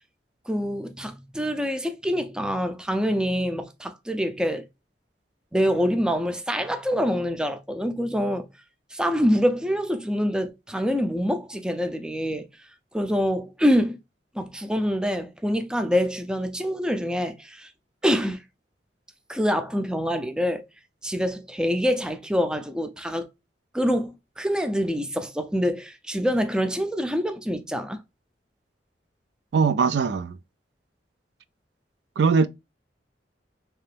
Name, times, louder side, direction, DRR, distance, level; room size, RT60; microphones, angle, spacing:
voice 1, 0.5-4.7 5.5-8.5 8.9-12.5 12.9-14.0 14.3-17.7 18.0-18.4 19.3-20.7 21.0-23.3 23.7-28.0, equal, 5° right, 0.4 m, -25 dB
voice 2, 29.5-30.3 32.2-32.5, right 5 dB, 75° right, 0.4 m, -20 dB
3.3 x 2.9 x 3.3 m
head